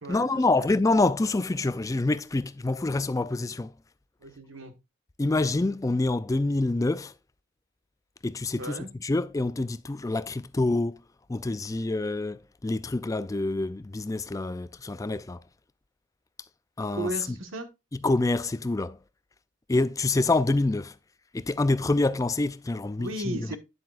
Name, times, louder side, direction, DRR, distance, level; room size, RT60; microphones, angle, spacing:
voice 1, 0.1-3.7 5.2-7.1 8.2-11.0 11.3-15.4 16.8-17.4 17.9-19.0 19.7-21.0 21.3-23.6, left 2 dB, 15° left, 0.3 m, -26 dB
voice 2, 4.2-4.7 8.6-8.9 16.9-17.7 23.0-23.6, right 1 dB, 80° right, 1.5 m, -35 dB
9.5 x 7.6 x 2.4 m
head